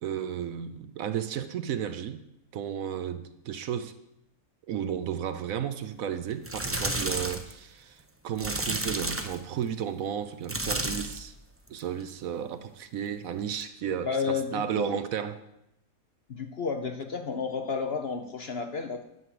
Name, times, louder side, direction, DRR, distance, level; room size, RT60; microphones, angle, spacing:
voice 1, 0.0-2.2 2.5-3.9 4.7-11.3 11.7-15.4, right 9 dB, 65° right, 10 dB, 1.0 m, -33 dB
sound 1, 6.3-7.5 8.4-9.4 10.4-11.3 11.7-12.0 13.5-13.6, right 1 dB, 15° right, 0.6 m, -31 dB
voice 2, 14.0-15.0 16.3-19.0, left 5 dB, 50° left, 6 dB, 0.8 m, -31 dB
10.0 x 6.2 x 7.8 m, 0.85 s
omnidirectional pair, 1.7 m